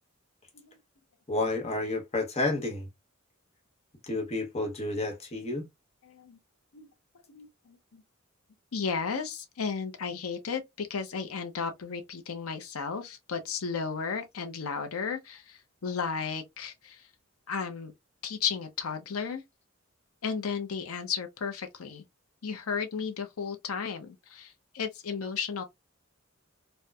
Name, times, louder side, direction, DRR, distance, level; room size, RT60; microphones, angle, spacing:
voice 1, 1.3-2.9 4.0-5.7, left 2 dB, 30° left, 0.8 m, -30 dB
voice 2, 6.0-6.4 6.7-6.9 7.3-8.0 8.7-17.0 17.5-17.9 18.2-19.4 20.2-22.0 22.4-25.6, left 6 dB, 90° left, 0.6 m, -34 dB
4.2 x 2.2 x 2.3 m
head